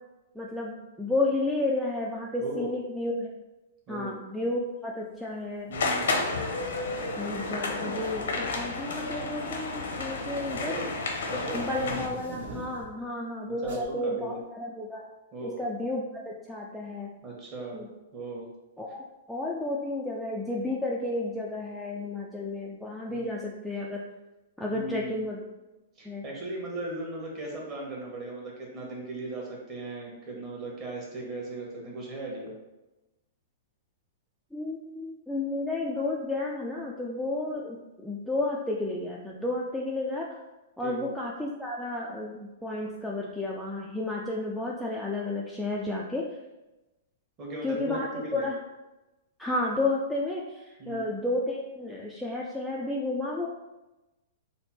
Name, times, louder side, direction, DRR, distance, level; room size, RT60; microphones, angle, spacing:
voice 1, 0.4-3.3 3.9-5.8 7.2-10.7 11.5-15.1 15.4-17.1 17.7-17.9 18.8-24.1 24.6-25.4 26.1-26.2 34.5-40.3 40.8-46.2 47.6-48.1 48.3-48.6 49.4-50.4 50.9-53.5, left 2 dB, ahead, -4 dB, 0.3 m, -32 dB
voice 2, 2.4-2.7 3.9-4.2 5.7-6.2 10.5-10.8 11.3-11.6 13.5-14.4 15.3-15.6 17.2-17.8 18.1-18.5 23.1-23.3 24.7-25.3 26.0-32.5 40.8-41.1 47.4-48.5 50.8-51.1, right 2 dB, 25° right, -3 dB, 1.1 m, -37 dB
sound 1, 5.7-12.1, left 3 dB, 80° left, 0.7 m, -31 dB
sound 2, 6.7-7.0 8.0-8.4 8.8-13.0 13.6-13.9, right 2 dB, 75° right, 1.0 m, -45 dB
3.4 x 2.0 x 4.2 m, 1.0 s
hypercardioid pair, 150°, 0 cm